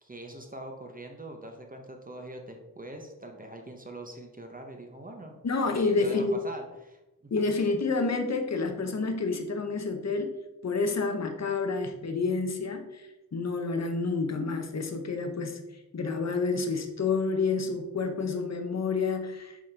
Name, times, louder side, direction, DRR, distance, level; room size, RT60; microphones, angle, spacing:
voice 1, 0.0-5.4 5.7-7.4, right 1 dB, 25° right, 3 dB, 0.7 m, -43 dB
voice 2, 5.4-6.4 7.3-10.3 10.6-15.6 15.9-19.6, left 4 dB, 45° left, 6 dB, 0.8 m, -29 dB
7.4 x 4.1 x 3.3 m, 1.0 s
wide cardioid pair, 125°, 36 cm